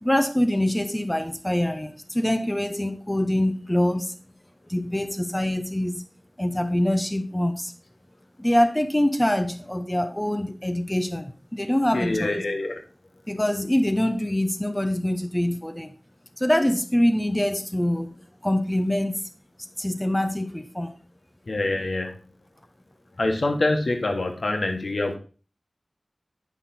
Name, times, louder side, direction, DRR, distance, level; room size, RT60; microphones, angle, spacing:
voice 1, 0.0-4.1 4.7-6.0 6.4-7.7 8.4-12.5 13.3-15.9 16.4-18.2 18.4-19.2 19.6-20.9, left 1 dB, 15° left, 8 dB, 0.8 m, -24 dB
voice 2, 11.9-12.8 21.5-22.1 23.2-25.2, left 2 dB, 80° left, 4 dB, 1.5 m, -25 dB
10.0 x 5.8 x 4.2 m, 0.37 s
wide cardioid pair, 60°, 0 cm